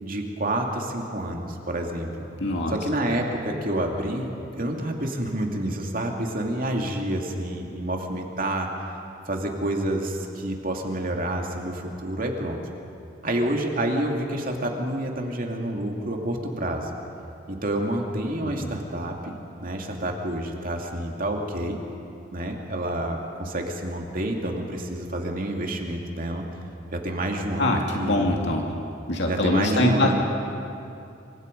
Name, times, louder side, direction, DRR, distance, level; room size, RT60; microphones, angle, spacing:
voice 1, 0.0-2.3 2.7-4.3 4.6-8.7 9.3-12.6 13.2-16.9 17.5-19.3 19.6-21.8 22.3-26.5 26.9-28.3 29.3-30.2, right 1 dB, 45° right, 1 dB, 2.6 m, -28 dB
voice 2, 2.4-2.7 18.4-18.7 27.6-28.7 29.1-30.1, left 1 dB, 60° left, 0 dB, 2.5 m, -23 dB
27.5 x 25.0 x 5.4 m, 2.7 s
head